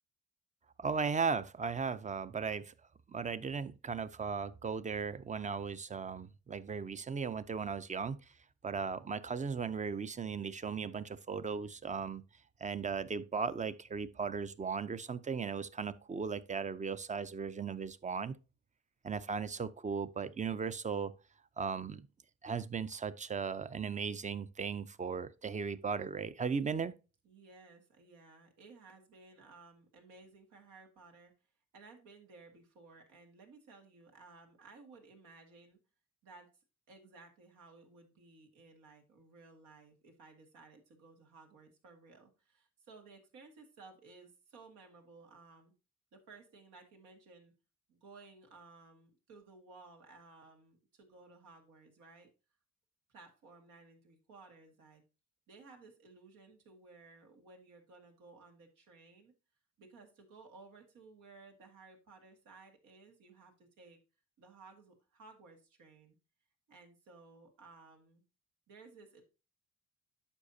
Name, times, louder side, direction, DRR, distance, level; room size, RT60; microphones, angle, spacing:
voice 1, 0.8-2.7 3.1-8.2 8.6-12.2 12.6-18.4 19.0-21.1 21.6-22.1 22.4-26.9, right 5 dB, 25° right, 0.5 m, -37 dB
voice 2, 27.2-31.3 31.7-35.8 36.2-36.5 36.9-45.7 46.1-47.5 47.9-52.3 53.1-55.0 55.5-59.3 59.8-64.0 64.4-66.2 66.7-68.2 68.7-69.2, right 3 dB, 90° right, 2.0 m, -57 dB
9.9 x 6.2 x 2.7 m
cardioid pair, 90°, 30 cm